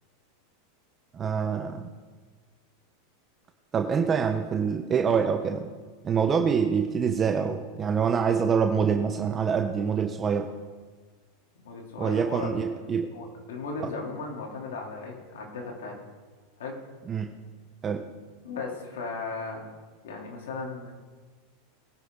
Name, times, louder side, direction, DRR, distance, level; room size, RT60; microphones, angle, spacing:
voice 1, 1.1-1.9 3.7-5.7 6.0-10.5 12.0-13.1 17.1-17.3 17.8-18.1, right 6 dB, 30° right, 5 dB, 1.0 m, -25 dB
voice 2, 11.6-12.5 13.1-16.0 16.6-16.8 18.4-19.6 20.0-20.9, left 4 dB, 80° left, -1 dB, 3.6 m, -36 dB
20.5 x 11.0 x 4.1 m, 1.5 s
hypercardioid pair, 100°, 0 cm